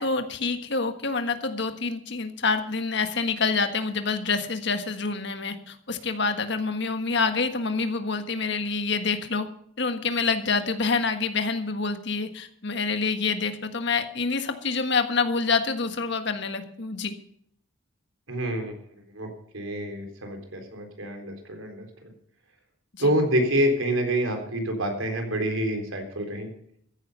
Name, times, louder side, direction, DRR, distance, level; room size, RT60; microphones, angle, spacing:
voice 1, 0.0-9.5 9.8-17.1 22.9-23.1, left 4 dB, 60° left, 8 dB, 1.5 m, -27 dB
voice 2, 18.3-18.7 19.1-19.3 19.5-21.9 23.0-26.5, right 1 dB, 85° right, 4 dB, 3.9 m, -27 dB
15.0 x 10.5 x 5.5 m, 0.67 s
head